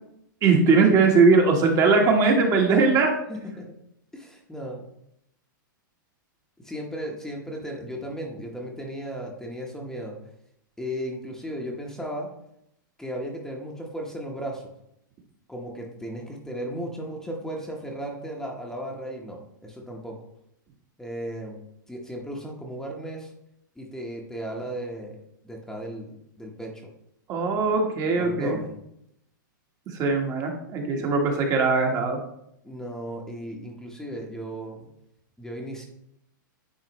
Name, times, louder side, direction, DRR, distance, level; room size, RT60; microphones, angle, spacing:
voice 1, 0.4-3.1 27.3-28.6 29.9-32.2, right 4 dB, 30° right, 2 dB, 1.3 m, -20 dB
voice 2, 3.3-3.8 4.1-4.9 6.6-10.2 10.8-12.3 13.0-14.7 15.5-20.2 21.0-21.6 21.9-23.3 23.8-25.2 25.4-26.9 28.1-28.8 30.9-31.0 32.6-34.9 35.4-35.9, equal, 5° left, -1 dB, 1.0 m, -35 dB
9.5 x 4.0 x 3.0 m, 0.76 s
hypercardioid pair, 130°, 11 cm